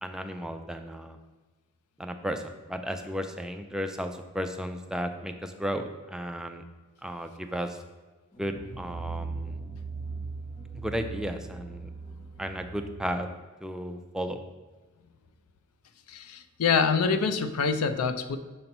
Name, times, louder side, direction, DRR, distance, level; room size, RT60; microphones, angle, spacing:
voice 1, 0.0-1.2 2.0-2.4 2.7-6.6 7.0-7.8 8.4-9.6 10.8-11.9 12.4-13.3 13.6-14.4, equal, 5° right, 6 dB, 0.3 m, -34 dB
sound 1, 8.3-13.2, right 4 dB, 20° left, 1.1 m, -39 dB
voice 2, 16.1-18.4, left 5 dB, 90° left, 10 dB, 0.5 m, -26 dB
6.7 x 2.9 x 5.3 m, 1.3 s
head